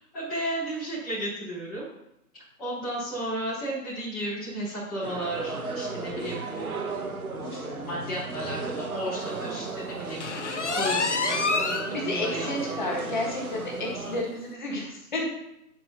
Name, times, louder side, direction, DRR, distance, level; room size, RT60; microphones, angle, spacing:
voice 1, 0.1-1.8 2.6-6.7 7.8-12.5 12.8-12.9, right 1 dB, ahead, -22 dB, 1.0 m, -34 dB
sound 1, 5.0-14.2, right 3 dB, 60° right, 1.3 m, -35 dB
voice 2, 7.3-8.2 11.9-15.3, left 2 dB, 30° left, -2 dB, 1.8 m, -32 dB
sound 2, 10.2-11.9 12.4-12.5 12.9-13.0 13.4-13.5 14.4-14.5, left 4 dB, 45° left, 0.8 m, -27 dB
10.5 x 6.9 x 3.0 m, 0.83 s
hypercardioid pair, 165°, 49 cm